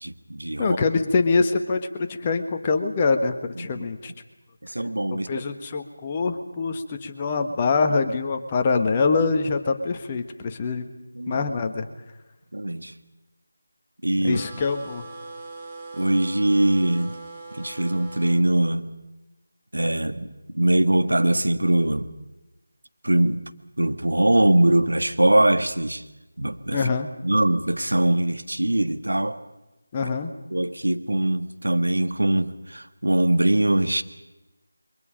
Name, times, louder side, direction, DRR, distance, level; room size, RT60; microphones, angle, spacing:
voice 1, 0.0-0.8 3.6-3.9 4.6-5.4 11.1-11.4 12.5-12.9 14.0-14.4 15.9-17.2 17.5-18.9 19.7-22.1 23.0-23.4 23.8-26.0 26.4-26.9 27.2-29.4 30.0-30.1 30.5-34.0, right 1 dB, 75° right, 9 dB, 1.5 m, -22 dB
voice 2, 0.6-4.1 5.1-10.9 11.3-11.9 14.2-15.0 26.7-27.1 29.9-30.3, left 4 dB, 20° left, 5 dB, 1.5 m, -24 dB
sound 1, 14.3-18.4, right 3 dB, 15° right, 2.5 m, -41 dB
29.5 x 23.0 x 5.2 m, 1.0 s
figure-of-eight pair, 165°, 0 cm